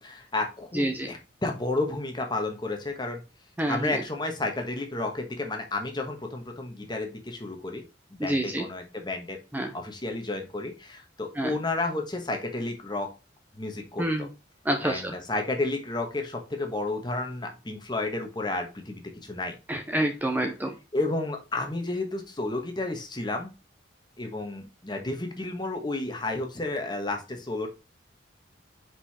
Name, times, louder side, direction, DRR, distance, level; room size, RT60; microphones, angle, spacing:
voice 1, 0.0-3.2 3.7-7.8 8.1-9.4 9.7-13.1 13.6-14.3 14.8-19.6 20.9-23.5 24.2-27.7, left 2 dB, 20° left, 4 dB, 1.3 m, -31 dB
voice 2, 0.7-1.1 3.6-3.8 8.2-8.6 9.5-9.7 11.4-11.5 14.0-14.3 14.7-15.1 19.7-20.7, right 1 dB, 10° right, 4 dB, 0.6 m, -27 dB
5.4 x 4.8 x 4.2 m, 0.29 s
head